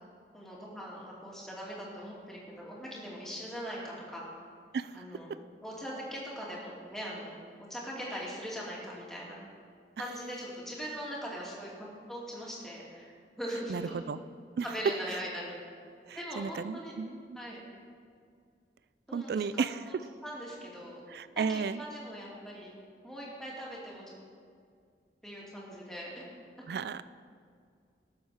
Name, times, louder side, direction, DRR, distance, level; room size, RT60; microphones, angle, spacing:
voice 1, 0.3-4.3 4.9-5.3 5.6-7.4 7.7-9.4 10.0-11.7 12.1-14.1 14.6-15.5 16.2-16.9 17.4-17.6 19.1-19.6 20.2-21.0 21.3-22.7 23.0-24.1 25.2-26.2, equal, 5° left, -5 dB, 2.6 m, -41 dB
voice 2, 4.7-5.0 13.7-14.2 14.6-14.7 16.1-17.4 19.1-19.8 21.1-21.8 26.7-27.0, right 5 dB, 65° right, 14 dB, 0.3 m, -34 dB
18.5 x 7.3 x 4.9 m, 2.2 s
head